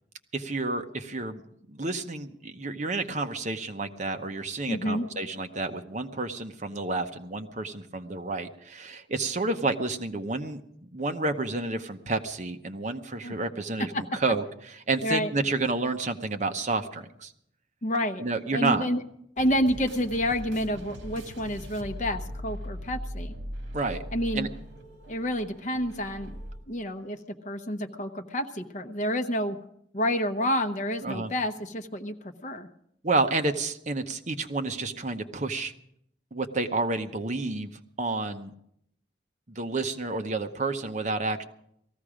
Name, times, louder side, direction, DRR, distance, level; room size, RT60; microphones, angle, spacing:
voice 1, 0.3-1.4 1.7-17.3 18.2-18.9 23.7-24.0 24.3-24.5 31.0-31.3 33.0-35.7 36.3-37.7 38.0-38.5 39.5-41.4, right 3 dB, 40° right, 6 dB, 0.9 m, -30 dB
voice 2, 4.7-5.1 13.2-13.3 13.9-14.0 15.0-15.3 17.8-18.2 18.5-19.0 19.4-23.3 24.1-24.5 25.1-26.4 26.7-29.6 29.9-32.7, equal, 40° left, 7 dB, 0.9 m, -29 dB
sound 1, 19.4-26.6, equal, 65° right, 2.4 m, -40 dB
18.5 x 15.0 x 5.0 m, 0.73 s
head